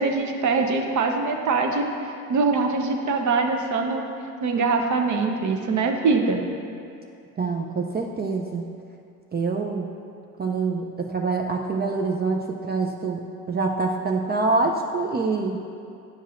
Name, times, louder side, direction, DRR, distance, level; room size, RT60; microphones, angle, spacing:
voice 1, 0.0-1.8 2.3-4.0 4.4-6.4, right 4 dB, 40° right, 4 dB, 0.9 m, -23 dB
voice 2, 7.4-8.6 9.3-9.9 10.4-13.2 13.5-15.6, right 3 dB, 25° right, 1 dB, 0.4 m, -25 dB
9.7 x 5.4 x 2.5 m, 2.4 s
hypercardioid pair, 70°, 46 cm